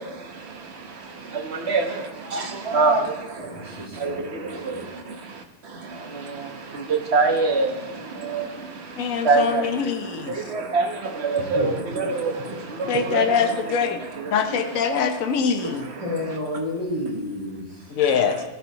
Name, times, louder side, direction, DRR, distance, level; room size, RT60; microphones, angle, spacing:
voice 1, 0.0-14.8 15.6-16.2, right 3 dB, 45° right, 3 dB, 1.3 m, -27 dB
voice 2, 3.4-4.9 11.4-11.7 13.1-13.2 16.0-17.9, left 1 dB, 20° right, -6 dB, 5.3 m, -31 dB
voice 3, 9.0-10.4 12.9-14.0 14.3-15.9 17.9-18.4, left 6 dB, 60° left, 6 dB, 1.3 m, -23 dB
16.5 x 12.0 x 3.0 m, 1.1 s
omnidirectional pair, 1.7 m